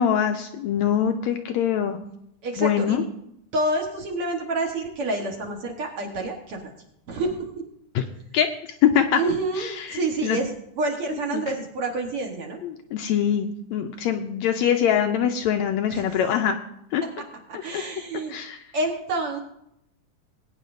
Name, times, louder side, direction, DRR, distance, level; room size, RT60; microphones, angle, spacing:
voice 1, 0.0-2.0 2.6-3.0 7.9-8.0 8.3-8.5 8.8-9.2 9.6-10.4 11.3-11.4 12.6-16.6 16.9-17.0 17.7-17.8 18.3-18.6, left 9 dB, 80° left, 5 dB, 1.7 m, -23 dB
voice 2, 2.4-3.0 3.5-6.7 7.1-7.5 9.2-10.5 10.8-12.6 15.9-16.2 17.5-18.4 18.7-19.4, right 2 dB, 55° right, 1 dB, 1.9 m, -28 dB
20.0 x 9.3 x 2.6 m, 0.77 s
omnidirectional pair, 3.6 m